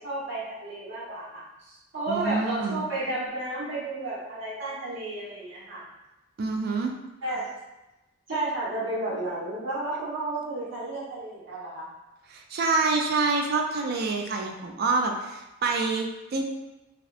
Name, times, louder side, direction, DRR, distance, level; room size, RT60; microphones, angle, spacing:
voice 1, 0.0-5.8 7.2-7.5 8.3-11.9, right 2 dB, 75° right, -10 dB, 1.2 m, -32 dB
voice 2, 2.1-2.8 6.4-6.9 12.3-16.4, right 3 dB, 55° right, 2 dB, 0.3 m, -27 dB
2.7 x 2.0 x 2.4 m, 1.0 s
head